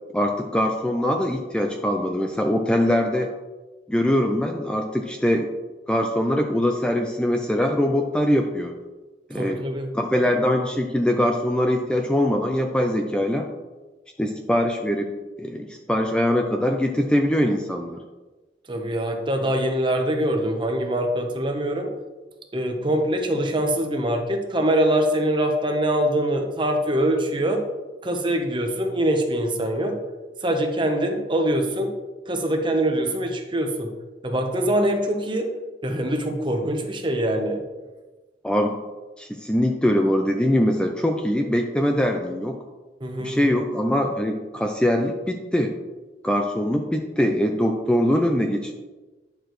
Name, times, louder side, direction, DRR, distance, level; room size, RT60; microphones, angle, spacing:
voice 1, 0.1-3.3 3.9-5.5 5.9-8.8 9.3-9.6 9.9-13.5 14.2-15.1 15.4-18.0 38.4-38.8 39.2-42.6 43.2-45.7 46.2-48.7, left 1 dB, 5° left, 3 dB, 0.4 m, -22 dB
voice 2, 9.3-9.9 18.7-21.9 22.5-27.6 28.0-30.0 30.4-31.9 32.3-33.9 34.2-35.5 35.8-37.6 43.0-43.4, right 1 dB, 30° right, 4 dB, 0.9 m, -23 dB
9.8 x 6.6 x 3.1 m, 1.2 s
head